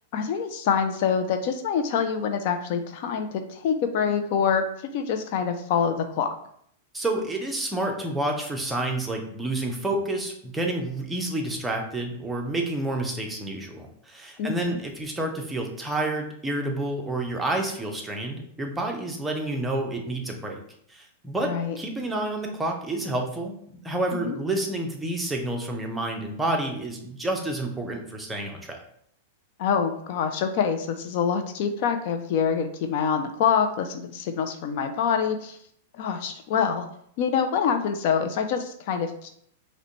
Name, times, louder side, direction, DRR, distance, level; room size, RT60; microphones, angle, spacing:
voice 1, 0.1-4.6 4.9-6.3 14.4-14.8 21.5-21.8 24.1-24.4 29.6-35.6 36.0-36.9 37.2-39.3, left 7 dB, 55° left, 7 dB, 0.4 m, -25 dB
voice 2, 6.9-20.6 20.9-23.6 23.8-28.8, right 2 dB, 10° right, 1 dB, 0.6 m, -29 dB
4.9 x 2.2 x 3.0 m, 0.67 s
hypercardioid pair, 135°, 0 cm